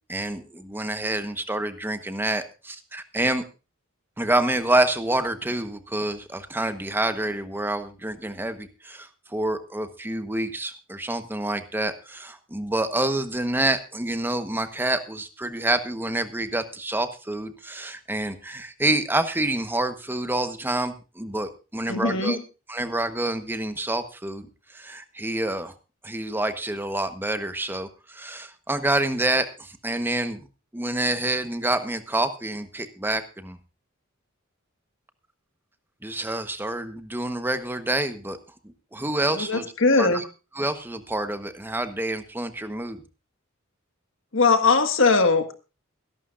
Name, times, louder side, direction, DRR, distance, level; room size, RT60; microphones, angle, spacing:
voice 1, 0.1-3.4 4.2-22.4 22.7-25.7 26.0-30.5 30.7-33.6 36.0-38.4 38.6-39.7 40.0-40.3 40.5-43.0, right 1 dB, 10° right, 10 dB, 1.1 m, -27 dB
voice 2, 21.9-22.4 39.3-40.2 44.3-45.5, left 4 dB, 65° left, 8 dB, 1.7 m, -20 dB
22.5 x 11.5 x 2.5 m, 0.31 s
head